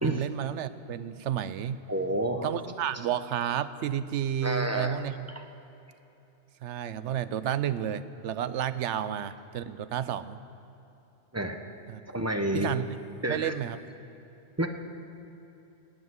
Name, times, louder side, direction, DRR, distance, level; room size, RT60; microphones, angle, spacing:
voice 1, 0.0-1.8 2.4-5.3 6.6-10.4 11.9-12.0 12.5-12.8 13.3-13.8, right 10 dB, 85° right, 14 dB, 0.9 m, -31 dB
voice 2, 1.9-2.5 4.4-5.0 11.3-11.6 12.1-12.7 13.2-13.5 14.6-14.7, right 1 dB, 15° right, 5 dB, 0.8 m, -29 dB
17.0 x 8.2 x 9.6 m, 3.0 s
omnidirectional pair, 1.2 m